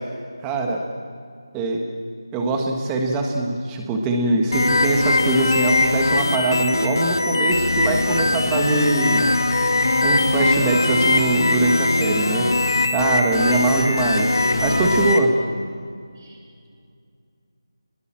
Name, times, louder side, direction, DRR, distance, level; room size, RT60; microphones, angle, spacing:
voice 1, 0.4-0.8 1.5-1.8 2.3-9.3 10.0-12.5 12.9-14.3 14.6-15.3, right 2 dB, 10° right, 2 dB, 1.5 m, -22 dB
sound 1, 4.5-15.2, left 2 dB, 60° left, 2.2 m, -21 dB
voice 2, 10.3-10.8 13.5-14.6 16.2-16.7, right 1 dB, 45° right, 0 dB, 7.2 m, -35 dB
29.5 x 21.0 x 7.6 m, 2.3 s
figure-of-eight pair, 175°, 2 cm